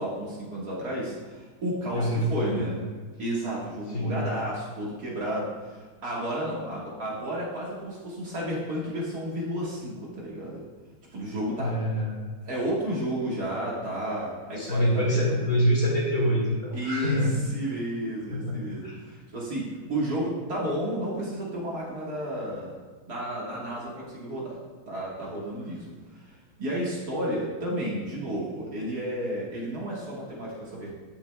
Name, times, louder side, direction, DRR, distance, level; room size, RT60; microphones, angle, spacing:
voice 1, 0.0-2.8 3.2-10.6 11.1-11.8 12.4-15.4 16.7-17.2 17.5-22.8 23.1-24.6 24.9-30.9, right 1 dB, 50° right, -5 dB, 2.0 m, -32 dB
voice 2, 1.9-2.7 3.9-4.2 11.6-12.1 14.6-17.3 18.3-18.5 18.8-19.0, equal, 45° left, -4 dB, 2.2 m, -25 dB
9.7 x 8.6 x 2.2 m, 1.4 s
omnidirectional pair, 2.3 m